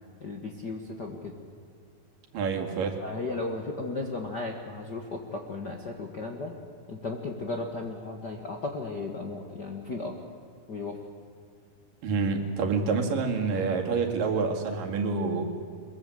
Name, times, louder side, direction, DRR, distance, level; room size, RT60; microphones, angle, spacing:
voice 1, 0.2-1.3 3.0-6.5 6.9-10.1 10.7-11.0, left 3 dB, 45° left, 2 dB, 1.4 m, -35 dB
voice 2, 2.3-3.0 12.0-15.5, right 4 dB, 70° right, 2 dB, 3.8 m, -27 dB
23.5 x 22.0 x 7.9 m, 2.3 s
omnidirectional pair, 4.1 m